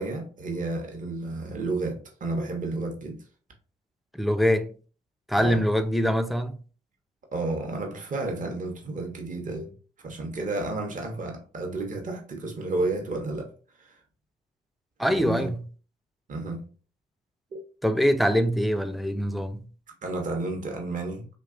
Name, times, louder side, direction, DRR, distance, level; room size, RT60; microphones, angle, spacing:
voice 1, 0.0-3.2 5.4-5.6 7.3-9.7 10.0-13.5 13.8-14.0 15.1-15.5 16.3-16.7 17.5-17.6 20.0-21.3, right 2 dB, 45° right, 0.7 m, -31 dB
voice 2, 4.1-4.7 5.3-6.6 15.0-15.6 17.8-19.6, equal, ahead, 0.3 m, -24 dB
2.8 x 2.2 x 2.4 m
supercardioid pair, 50°, 19 cm